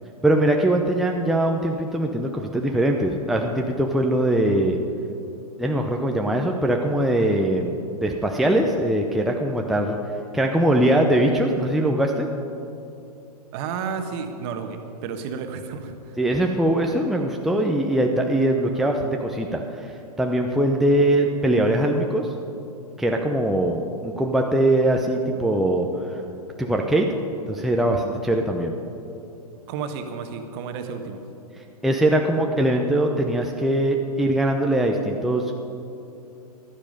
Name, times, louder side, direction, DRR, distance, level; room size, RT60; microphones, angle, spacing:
voice 1, 0.2-4.8 5.6-7.7 8.0-10.0 10.3-12.3 16.2-22.3 23.0-26.2 26.6-27.1 27.5-28.7 31.8-35.5, right 1 dB, ahead, 1 dB, 0.7 m, -21 dB
voice 2, 13.5-16.0 29.7-31.2, right 6 dB, 40° right, 6 dB, 1.4 m, -31 dB
14.5 x 12.0 x 5.4 m, 2.6 s
figure-of-eight pair, 110°, 20 cm